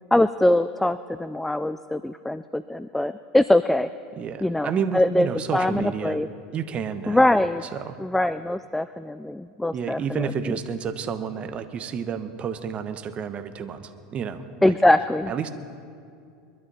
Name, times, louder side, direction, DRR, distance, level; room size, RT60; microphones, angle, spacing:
voice 1, 0.1-3.9 4.4-5.3 5.5-6.3 7.1-7.6 8.0-10.6 14.6-15.3, left 1 dB, 5° left, 13 dB, 0.3 m, -22 dB
voice 2, 4.2-6.2 6.5-7.2 7.7-8.0 9.7-14.7 15.3-15.5, right 7 dB, 35° right, 10 dB, 1.0 m, -30 dB
22.5 x 12.0 x 4.2 m, 2.5 s
hypercardioid pair, 105°, 4 cm